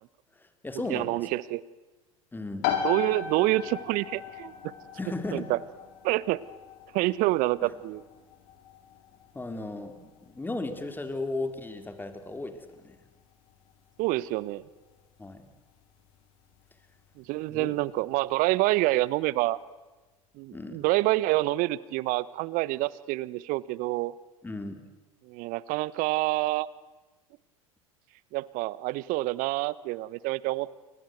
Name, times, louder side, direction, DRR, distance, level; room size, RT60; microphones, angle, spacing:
voice 1, 0.4-1.3 2.3-2.7 5.0-5.5 7.6-7.7 9.3-13.0 15.2-15.4 17.5-17.7 20.5-20.9 24.4-24.8, left 2 dB, 10° left, 8 dB, 3.7 m, -36 dB
voice 2, 0.9-1.6 2.8-4.5 5.3-5.6 6.0-6.4 6.9-8.0 14.0-14.6 17.2-19.6 20.4-24.1 25.3-26.7 28.3-30.7, right 18 dB, 50° right, 20 dB, 1.1 m, -27 dB
sound 1, 2.6-17.1, left 9 dB, 55° left, 4.6 m, -39 dB
29.5 x 24.5 x 8.1 m, 1.2 s
figure-of-eight pair, 80°, 18 cm